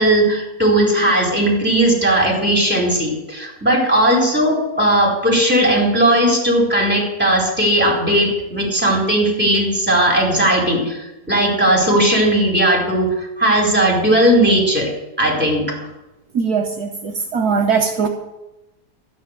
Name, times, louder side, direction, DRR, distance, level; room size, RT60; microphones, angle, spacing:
voice 1, 0.0-13.1 13.4-14.9 15.2-15.6, right 1 dB, 5° right, -3 dB, 4.5 m, -17 dB
voice 2, 16.3-18.1, right 5 dB, 70° right, 3 dB, 1.5 m, -20 dB
13.0 x 10.0 x 6.8 m, 0.97 s
omnidirectional pair, 1.7 m